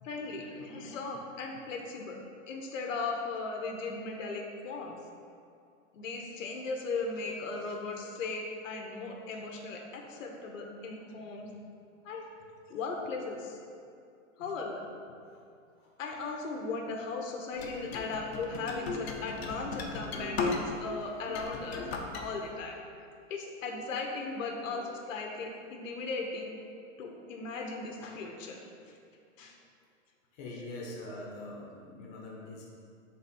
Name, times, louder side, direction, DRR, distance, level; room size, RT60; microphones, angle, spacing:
voice 1, 0.0-2.2 2.5-5.0 5.9-11.5 12.0-12.2 12.7-13.6 14.4-14.8 16.0-21.9 22.1-22.8 23.3-26.6 27.0-28.6 29.4-29.6, left 3 dB, 75° left, 1 dB, 1.0 m, -37 dB
sound 1, 17.6-20.9 21.3-22.2, left 4 dB, 50° left, 0.8 m, -36 dB
voice 2, 24.6-25.1 30.3-32.6, left 2 dB, 30° left, -3 dB, 1.1 m, -44 dB
6.8 x 4.0 x 4.3 m, 2.5 s
supercardioid pair, 160°, 39 cm